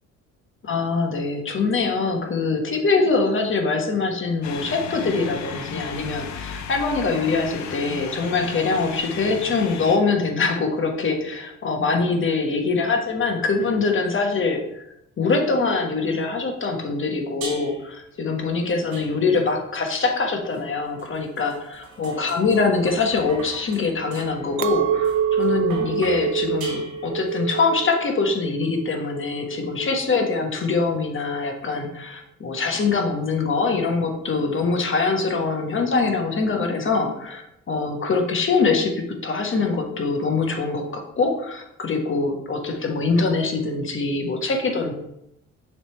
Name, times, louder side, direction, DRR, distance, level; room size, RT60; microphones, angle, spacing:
voice 1, 0.6-14.9 15.2-38.9 39.2-44.9, left 4 dB, 40° left, 3 dB, 1.3 m, -23 dB
sound 1, 4.4-10.0, left 6 dB, 70° left, 0.8 m, -35 dB
sound 2, 17.4-18.0 18.9-19.6 20.5-27.4, right 3 dB, 80° right, 2.4 m, -40 dB
Chink clink, 24.6-30.0, right 9 dB, 45° right, 0.4 m, -26 dB
6.4 x 3.4 x 4.4 m, 0.81 s
cardioid pair, 90°, 30 cm